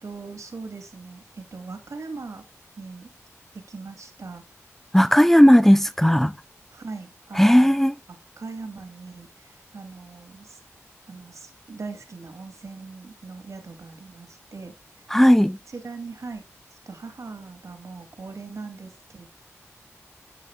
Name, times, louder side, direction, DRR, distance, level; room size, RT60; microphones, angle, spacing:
voice 1, 0.0-2.4 2.8-3.1 3.5-4.4 6.7-7.8 8.1-10.6 11.1-14.7 15.7-16.4 16.9-19.3, right 4 dB, 70° right, 2.5 m, -40 dB
voice 2, 4.9-6.3 7.4-7.9 15.1-15.6, equal, 5° left, 0.5 m, -15 dB
10.5 x 9.2 x 2.3 m
cardioid pair, 40°, 6 cm